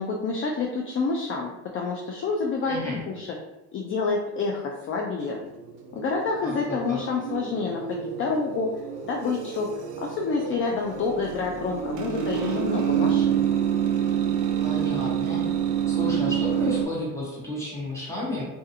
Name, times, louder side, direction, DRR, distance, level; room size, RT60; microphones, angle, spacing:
voice 1, 0.0-2.8 3.1-3.3 3.7-5.4 5.9-8.7 9.0-13.4, left 4 dB, 40° left, 0 dB, 0.4 m, -28 dB
voice 2, 2.6-3.0 6.4-7.0 14.6-15.4 15.9-18.4, left 1 dB, 10° left, -6 dB, 1.1 m, -32 dB
sound 1, 5.2-16.9, right 8 dB, 65° right, 0.5 m, -27 dB
2.4 x 2.4 x 2.7 m, 0.95 s
cardioid pair, 105°, 32 cm